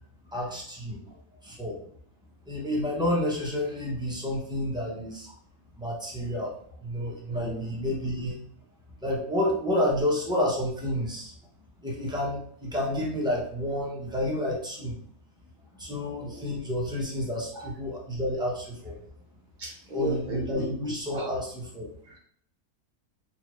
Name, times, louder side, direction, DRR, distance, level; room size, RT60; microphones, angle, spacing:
voice 1, 0.3-1.0 1.4-1.8 2.5-5.3 5.8-6.5 6.8-8.4 9.0-11.3 11.8-14.9 15.7-19.0 19.9-21.9, left 1 dB, 5° right, -4 dB, 0.4 m, -30 dB
voice 2, 7.3-7.7 15.9-16.4 17.5-17.7 19.6-20.7 21.1-21.3 22.0-22.2, right 2 dB, 40° right, -1 dB, 0.8 m, -37 dB
4.1 x 2.4 x 3.0 m, 0.63 s
omnidirectional pair, 1.6 m